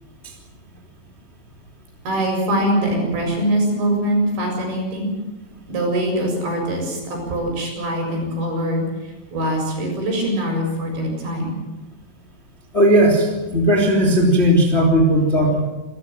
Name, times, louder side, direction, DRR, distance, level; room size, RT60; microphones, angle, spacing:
voice 1, 2.1-5.1 5.7-11.6, right 1 dB, 60° right, 1 dB, 9.2 m, -23 dB
voice 2, 12.7-15.6, right 1 dB, 15° left, 1 dB, 2.6 m, -16 dB
28.0 x 14.5 x 7.6 m, 1.1 s
omnidirectional pair, 5.8 m